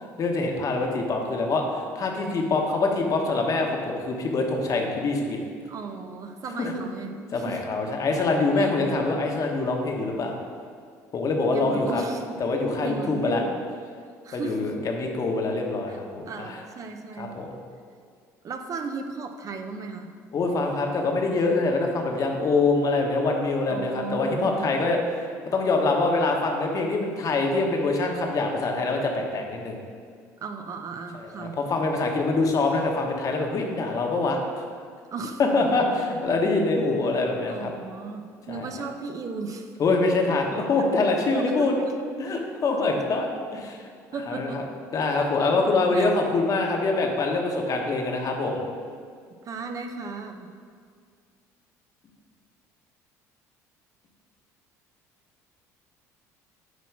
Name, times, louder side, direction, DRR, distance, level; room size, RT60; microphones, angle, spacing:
voice 1, 0.2-5.4 6.6-6.7 7.3-10.4 11.1-12.0 12.4-13.4 14.3-16.6 17.2-17.6 20.3-29.8 31.4-34.6 35.4-37.7 38.5-38.7 39.8-41.7 42.2-43.8 44.3-44.6 44.9-48.6, left 3 dB, 45° left, 1 dB, 1.2 m, -25 dB
voice 2, 5.7-7.6 8.1-8.8 11.5-12.4 12.8-13.6 14.2-14.7 15.9-16.0 16.3-17.3 18.4-20.1 23.7-24.7 30.4-31.6 35.1-35.4 36.3-36.7 37.5-39.7 40.1-40.2 41.3-41.9 44.1-44.6 45.4-45.6 45.9-46.1 49.5-50.5, right 4 dB, 45° right, 5 dB, 0.6 m, -36 dB
8.2 x 3.0 x 5.9 m, 2.1 s
hypercardioid pair, 70°, 8 cm